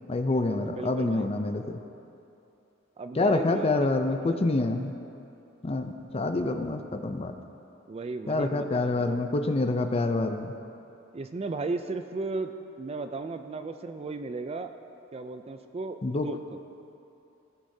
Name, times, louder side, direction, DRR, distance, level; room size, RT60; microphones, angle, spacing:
voice 1, 0.1-1.8 3.2-4.9 5.6-7.3 8.3-10.5 16.0-16.3, left 2 dB, 30° left, 6 dB, 0.5 m, -27 dB
voice 2, 0.6-1.3 3.0-3.7 4.2-4.5 7.9-9.3 11.1-14.7 15.1-16.6, right 3 dB, 30° right, 8 dB, 0.4 m, -35 dB
16.0 x 6.7 x 2.7 m, 2.8 s
head